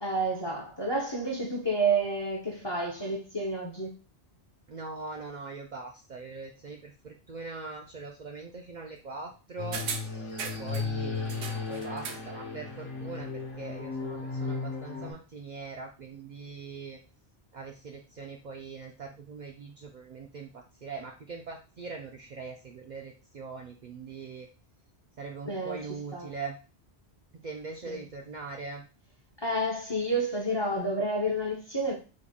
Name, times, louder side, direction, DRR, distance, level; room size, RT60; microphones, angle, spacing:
voice 1, 0.0-3.9 25.4-25.8 26.1-26.3 27.9-28.0 29.4-31.9, right 2 dB, 30° left, 0.6 m, -30 dB
voice 2, 4.7-17.0 17.5-24.5 25.2-26.6 27.3-28.9, right 4 dB, 55° right, 0.5 m, -42 dB
sound 1, 9.6-15.1, left 4 dB, 55° left, 1.1 m, -35 dB
sound 2, 9.7-10.9 11.3-12.3 12.6-12.7, right 5 dB, 75° right, 0.9 m, -38 dB
3.7 x 2.2 x 3.5 m
omnidirectional pair, 1.1 m